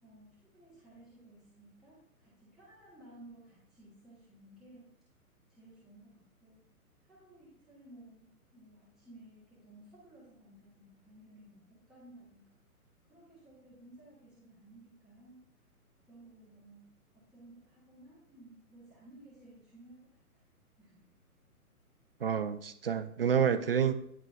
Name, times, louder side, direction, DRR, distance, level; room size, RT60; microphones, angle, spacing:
voice 1, 0.0-4.9 5.5-6.6 7.1-12.6 13.1-15.4 16.1-16.8 17.1-20.4 20.8-21.0, right 1 dB, ahead, -10 dB, 0.8 m, -57 dB
voice 2, 22.2-23.9, right 7 dB, 40° right, 11 dB, 0.4 m, -28 dB
9.6 x 4.8 x 2.3 m, 0.69 s
figure-of-eight pair, 125°, 44 cm